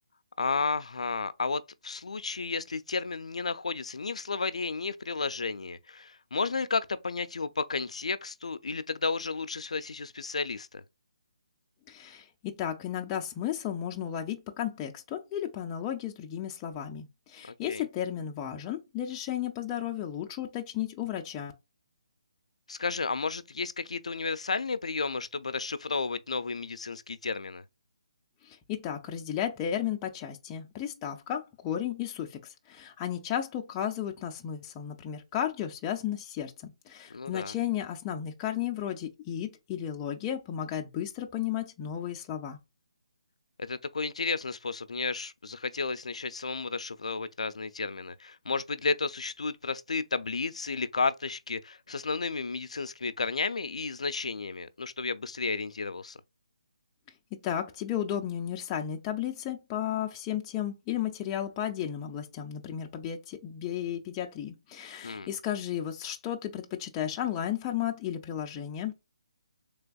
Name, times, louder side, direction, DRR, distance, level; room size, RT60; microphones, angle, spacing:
voice 1, 0.4-10.8 17.6-17.8 22.7-27.6 37.1-37.5 43.6-56.2 65.0-65.3, left 4 dB, 85° left, 0.4 m, -32 dB
voice 2, 11.9-21.5 28.4-42.6 57.4-68.9, left 10 dB, 15° left, 0.3 m, -34 dB
3.3 x 3.3 x 2.2 m
hypercardioid pair, 170°, 3 cm